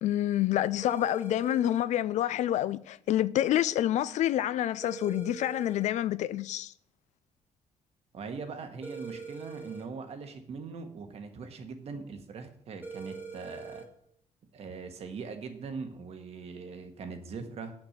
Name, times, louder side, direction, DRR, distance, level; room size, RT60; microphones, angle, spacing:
voice 1, 0.0-6.7, left 12 dB, 70° left, 0.4 m, -28 dB
sound 1, 0.8-1.9 4.8-5.9 8.8-9.9 12.8-13.9, right 4 dB, 15° right, 1.4 m, -42 dB
voice 2, 8.1-13.8 14.5-17.7, right 5 dB, 55° right, 1.4 m, -41 dB
8.7 x 6.0 x 6.6 m
cardioid pair, 125°, 13 cm